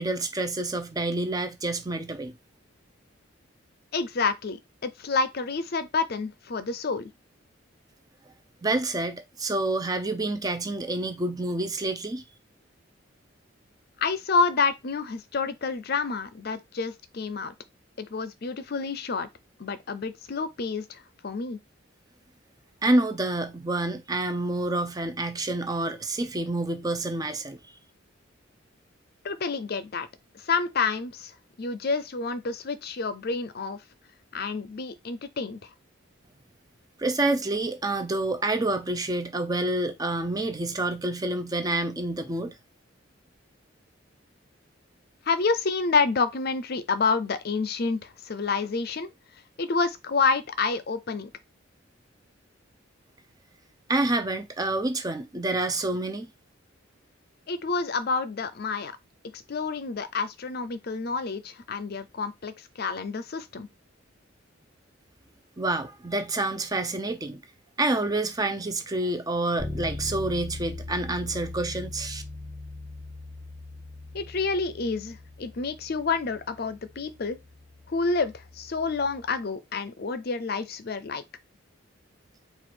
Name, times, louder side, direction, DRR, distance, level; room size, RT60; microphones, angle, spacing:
voice 1, 0.0-2.3 8.6-12.2 22.8-27.6 37.0-42.5 53.9-56.3 65.6-67.4 67.8-72.2, right 2 dB, 20° right, 0.5 m, -28 dB
voice 2, 3.9-7.1 14.0-17.5 18.0-19.3 19.6-21.6 29.2-30.1 30.3-31.3 31.6-33.8 34.3-35.7 45.3-49.1 49.6-51.3 57.5-59.0 59.3-63.7 74.1-77.4 77.9-81.2, left 4 dB, 50° left, 0.5 m, -28 dB
Bass guitar, 69.6-79.4, left 2 dB, ahead, 0.9 m, -40 dB
4.6 x 2.5 x 4.3 m
head